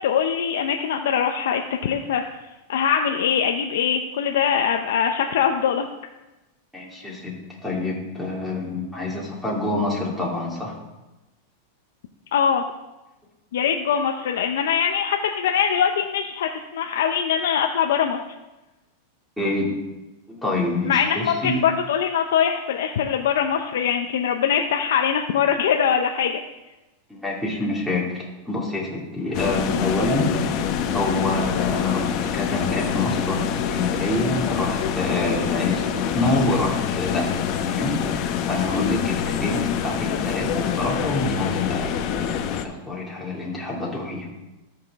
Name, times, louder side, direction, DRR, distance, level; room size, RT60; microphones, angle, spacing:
voice 1, 0.0-2.2 2.7-5.9 12.3-12.6 13.5-18.2 20.8-26.4 31.0-31.2 38.7-39.0, left 8 dB, 80° left, 3 dB, 0.6 m, -22 dB
voice 2, 6.7-7.3 7.6-10.7 19.4-19.7 20.3-21.5 27.1-30.3 30.9-33.4 33.7-37.3 37.7-37.9 38.5-41.9 42.2-44.3, left 2 dB, ahead, -6 dB, 2.3 m, -26 dB
sound 1, 29.3-42.7, left 8 dB, 45° left, 0.8 m, -26 dB
13.0 x 5.9 x 3.6 m, 1.0 s
supercardioid pair, 140°, 0 cm